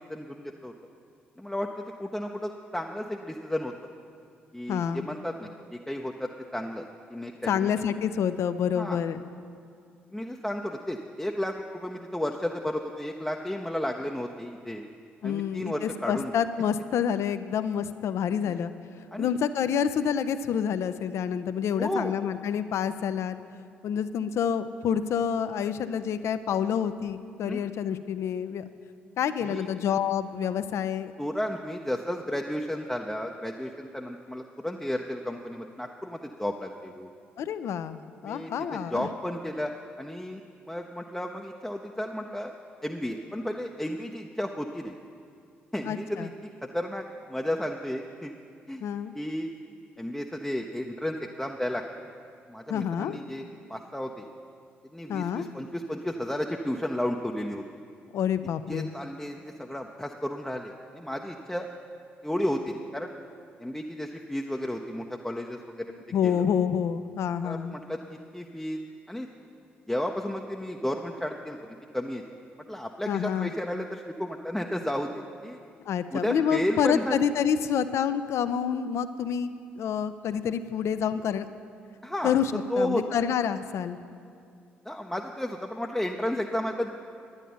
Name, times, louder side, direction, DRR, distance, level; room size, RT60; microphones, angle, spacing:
voice 1, 0.1-0.7 1.4-3.7 4.5-6.8 7.1-7.7 8.7-9.0 10.1-14.9 15.2-16.3 18.5-18.6 19.1-19.3 21.8-22.1 27.5-27.6 29.4-29.7 31.2-37.1 38.2-39.7 40.0-40.4 40.7-42.5 42.8-45.0 45.7-46.3 46.7-47.0 47.3-48.3 48.7-48.8 49.1-49.5 50.0-51.8 52.5-53.4 53.7-54.2 54.9-57.6 58.7-61.7 62.2-63.1 63.6-65.9 66.2-66.4 67.4-68.8 69.1-69.3 69.9-72.2 72.7-75.6 76.1-77.2 82.0-82.3 82.7-83.0 84.9-87.0, left 1 dB, 5° left, 1 dB, 0.6 m, -33 dB
voice 2, 4.7-5.1 7.4-9.2 15.2-18.7 19.2-23.4 23.8-28.6 29.2-31.1 37.4-39.1 45.8-46.3 48.8-49.1 52.7-53.2 55.1-55.5 58.1-58.9 66.1-67.8 73.1-73.5 75.9-81.5 82.2-84.0, left 8 dB, 55° left, 12 dB, 0.4 m, -28 dB
10.0 x 9.5 x 5.5 m, 2.4 s
figure-of-eight pair, 45°, 6 cm